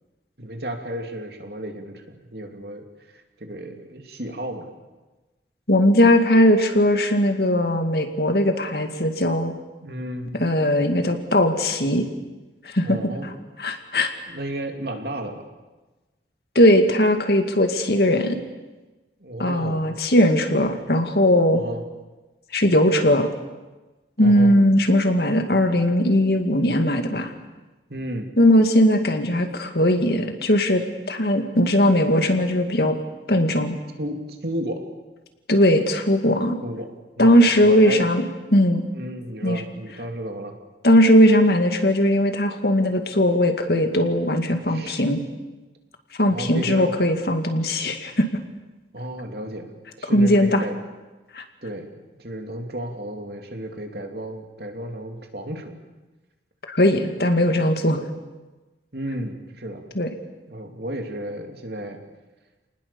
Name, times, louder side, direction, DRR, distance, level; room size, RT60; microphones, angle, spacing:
voice 1, 0.4-4.7 9.8-10.3 12.8-13.3 14.3-15.4 19.2-20.0 21.5-21.8 24.2-24.6 27.9-28.3 34.0-34.9 36.6-38.1 38.9-40.6 44.7-45.0 46.3-46.9 48.9-50.8 51.6-51.9 52.2-55.8 58.9-59.8 60.5-62.0, right 1 dB, 60° right, 4 dB, 3.0 m, -33 dB
voice 2, 5.7-9.5 10.4-12.1 12.7-13.0 13.6-14.1 16.6-18.4 19.4-21.6 22.5-23.3 24.2-27.3 28.4-30.8 31.1-33.0 33.3-33.8 35.5-36.6 37.2-38.2 38.5-38.9 39.4-39.6 40.8-45.2 46.2-48.3 50.1-50.6 51.3-51.4 56.7-58.0 60.0-60.1, left 1 dB, 60° left, 6 dB, 2.4 m, -19 dB
30.0 x 19.5 x 7.1 m, 1.2 s
head